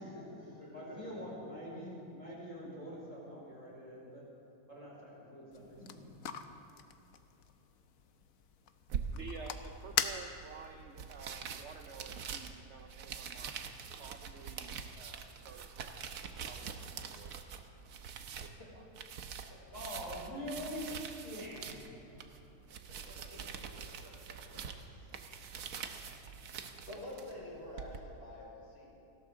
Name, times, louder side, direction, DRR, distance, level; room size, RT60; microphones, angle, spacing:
voice 1, 0.0-4.2 4.7-6.2 19.7-20.9 21.2-21.8, equal, 25° right, -6 dB, 4.9 m, -45 dB
voice 2, 0.6-0.9 18.6-18.7 23.0-23.4 24.0-24.3 24.8-25.3 25.9-26.2 26.6-28.9, left 1 dB, 40° left, -6 dB, 5.2 m, -49 dB
sound 1, 5.5-10.7, left 8 dB, 70° left, 1.1 m, -41 dB
sound 2, 8.9-28.0, right 6 dB, 90° right, 1.4 m, -45 dB
voice 3, 9.1-13.6 14.0-16.0 16.4-17.8 18.4-18.9, right 5 dB, 55° right, 4 dB, 1.0 m, -51 dB
30.0 x 12.5 x 3.8 m, 3.0 s
omnidirectional pair, 1.6 m